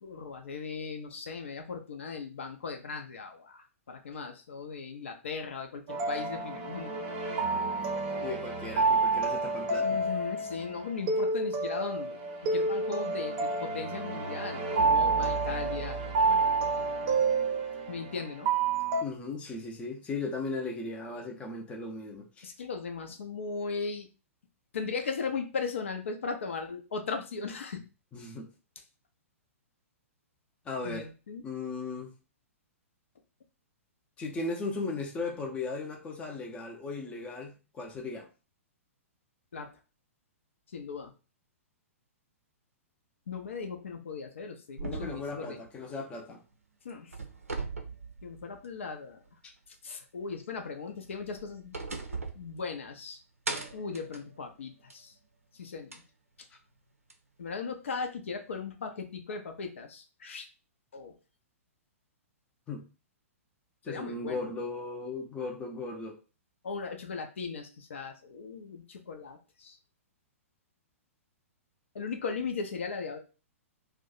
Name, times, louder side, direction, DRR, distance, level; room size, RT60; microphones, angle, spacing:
voice 1, 0.0-7.0 9.8-16.0 16.3-17.5 17.9-18.5 22.4-24.1 24.7-27.8 30.8-31.4 39.5-39.7 40.7-41.1 43.3-45.6 46.8-47.2 48.2-49.2 49.7-53.2 53.7-55.1 55.5-56.0 56.4-56.5 57.4-60.5 60.9-61.1 63.9-64.4 66.6-69.8 71.9-73.2, left 5 dB, 60° left, 0.5 m, -38 dB
sound 1, 5.9-19.0, right 3 dB, 35° right, 0.6 m, -29 dB
voice 2, 8.2-10.0 19.0-22.5 28.1-28.5 30.7-31.1 31.4-32.1 34.2-38.3 44.8-46.4 62.7-62.9 63.8-66.2, left 3 dB, 15° left, 0.5 m, -37 dB
sound 2, 44.8-46.5 46.9-48.9 49.3-49.4 51.0-53.1 53.5-55.1 55.9-56.0 57.1-57.2, right 3 dB, 75° right, 0.5 m, -40 dB
2.6 x 2.2 x 3.8 m
figure-of-eight pair, 110°, 8 cm